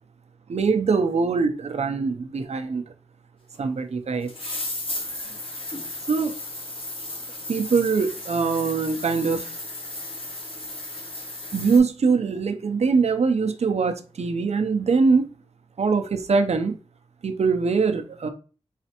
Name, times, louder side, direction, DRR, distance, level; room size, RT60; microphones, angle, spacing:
voice 1, 0.5-2.8 3.6-4.3 6.1-6.3 7.5-9.5 11.5-15.3 15.8-16.8 17.2-18.3, right 4 dB, 65° right, 0.5 m, -22 dB
sound 1, 3.5-3.6 4.3-11.8, left 2 dB, 50° left, 1.3 m, -34 dB
4.1 x 3.2 x 2.9 m
wide cardioid pair, 90°, 12 cm